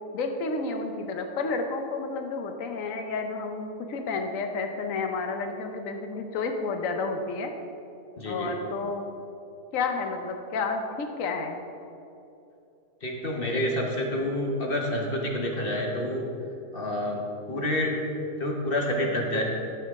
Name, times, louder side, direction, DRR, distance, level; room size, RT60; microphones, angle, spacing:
voice 1, 0.1-7.5 8.2-9.1 9.7-11.6, left 4 dB, 60° left, 5 dB, 1.2 m, -31 dB
voice 2, 8.2-8.5 13.0-16.3 16.7-17.2 17.5-18.0 18.4-19.4, left 1 dB, 40° left, 0 dB, 1.2 m, -28 dB
12.5 x 7.0 x 3.7 m, 2.8 s
omnidirectional pair, 1.7 m